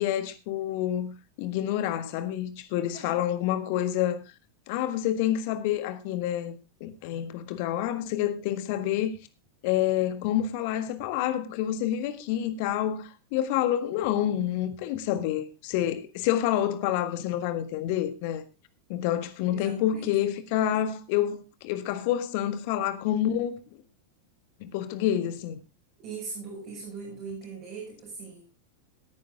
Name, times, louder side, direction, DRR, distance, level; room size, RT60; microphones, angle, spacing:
voice 1, 0.0-4.2 4.7-6.5 6.8-9.1 9.6-18.4 18.9-23.6 24.6-25.6, left 11 dB, 45° left, 1.6 m, -28 dB
voice 2, 19.5-20.1 26.0-28.5, right 4 dB, 45° right, 6.0 m, -40 dB
17.5 x 9.4 x 3.6 m
figure-of-eight pair, 90°, 0 cm